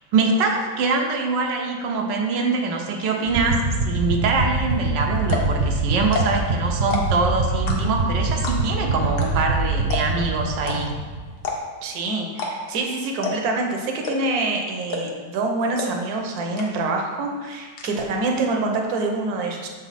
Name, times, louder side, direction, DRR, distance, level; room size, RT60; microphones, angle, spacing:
voice 1, 0.1-10.9, right 3 dB, 85° right, 2 dB, 1.4 m, -23 dB
sound 1, 3.3-11.4, right 2 dB, 50° right, 0.9 m, -24 dB
Clicking my tongue, 4.7-4.8 5.2-5.5 6.0-6.5 6.8-7.2 7.7-8.1 8.4-8.8 9.2-9.3 9.5-9.6 9.9-10.2 10.6-10.8 11.4-11.8 12.3-12.5 12.8-12.9 13.2-13.5 14.0-14.4 14.9-15.2 15.8-15.9 16.2-16.3 16.6-17.0 17.3-17.9, left 4 dB, 70° left, 1.4 m, -28 dB
voice 2, 11.8-19.7, right 3 dB, 65° right, 1 dB, 1.2 m, -26 dB
6.4 x 4.1 x 4.1 m, 1.4 s
omnidirectional pair, 1.9 m